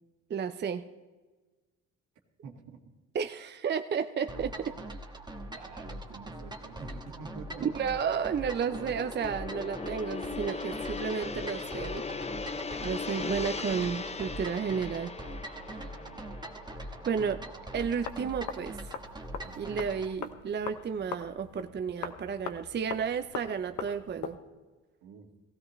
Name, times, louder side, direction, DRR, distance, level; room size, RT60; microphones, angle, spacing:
voice 1, 0.3-0.9 3.1-4.7 7.6-12.1 12.8-15.1 17.0-17.4 17.7-18.8 19.6-24.4, right 7 dB, 35° right, 9 dB, 0.6 m, -32 dB
voice 2, 2.4-2.8 4.6-4.8 5.4-7.7 15.6-16.3 16.9-17.5 19.4-19.9 25.0-25.3, right 5 dB, 85° right, 2 dB, 1.9 m, -50 dB
sound 1, 4.3-20.1, right 1 dB, 15° right, 1.4 m, -42 dB
Gong, 6.3-18.7 19.1-19.3, left 4 dB, 20° left, 0.6 m, -40 dB
sound 2, 17.7-24.4, left 7 dB, 75° left, 1.1 m, -42 dB
16.5 x 16.0 x 3.2 m, 1.3 s
cardioid pair, 90°, 30 cm